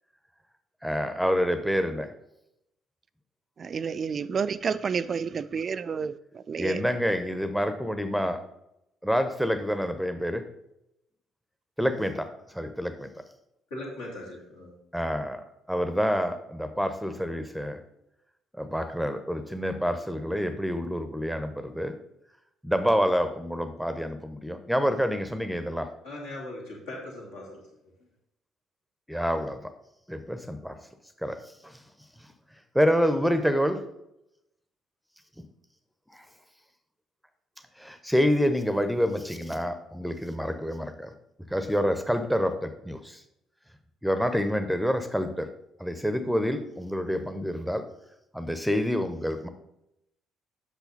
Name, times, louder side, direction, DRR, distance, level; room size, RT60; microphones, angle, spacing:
voice 1, 0.8-2.1 6.6-8.4 9.0-10.4 11.8-13.1 14.9-17.8 18.6-22.0 22.6-25.9 29.1-29.7 30.1-30.8 31.2-31.8 32.7-33.8 35.4-35.5 36.1-36.3 37.8-41.1 41.5-43.2 44.0-45.5 45.8-47.8 48.3-49.5, equal, ahead, 9 dB, 0.8 m, -27 dB
voice 2, 3.6-6.8, right 6 dB, 40° right, 15 dB, 0.3 m, -30 dB
voice 3, 13.7-14.8 26.0-27.7, left 1 dB, 70° left, -3 dB, 2.5 m, -39 dB
8.2 x 6.1 x 4.1 m, 0.82 s
figure-of-eight pair, 45°, 0 cm